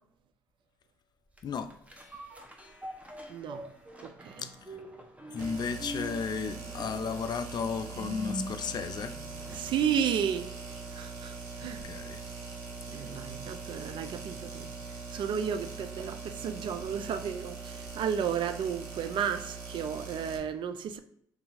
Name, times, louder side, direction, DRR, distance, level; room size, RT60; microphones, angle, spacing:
sound 1, 1.3-9.9 10.4-10.5, equal, 15° right, 0.9 m, -44 dB
voice 1, 1.4-1.7 4.4-4.8 5.3-9.2 11.6-12.3, left 5 dB, 50° left, 0.4 m, -34 dB
voice 2, 3.3-3.6 4.0-4.4 9.5-10.5 10.9-11.8 12.9-14.7 15.1-21.0, right 8 dB, 60° right, 0.4 m, -33 dB
sound 2, 5.4-20.4, right 4 dB, 75° right, 0.8 m, -42 dB
2.8 x 2.5 x 4.1 m
hypercardioid pair, 55°, 10 cm